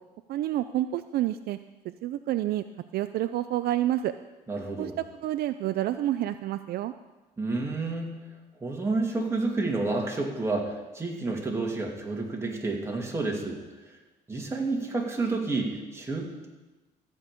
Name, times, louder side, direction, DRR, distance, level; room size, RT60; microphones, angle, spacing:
voice 1, 0.3-1.6 1.8-2.6 2.9-4.1 4.8-4.9 5.2-6.9, right 13 dB, 65° right, 11 dB, 0.4 m, -28 dB
voice 2, 4.5-5.0 7.4-8.2 8.6-13.6 14.3-16.5, right 3 dB, 15° right, -1 dB, 2.5 m, -30 dB
14.0 x 5.3 x 8.3 m, 1.1 s
cardioid pair, 110°, 17 cm